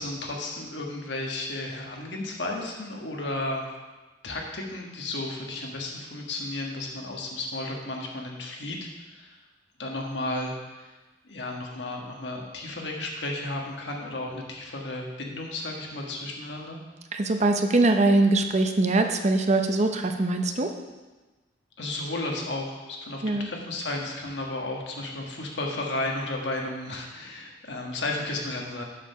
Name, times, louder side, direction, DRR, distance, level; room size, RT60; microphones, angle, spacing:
voice 1, 0.0-3.6 4.2-9.4 9.8-11.0 11.2-16.8 21.8-28.8, left 2 dB, 75° left, 0 dB, 1.5 m, -33 dB
voice 2, 17.1-20.7 23.2-23.5, right 2 dB, 40° right, 6 dB, 0.7 m, -22 dB
7.5 x 6.5 x 5.6 m, 1.2 s
head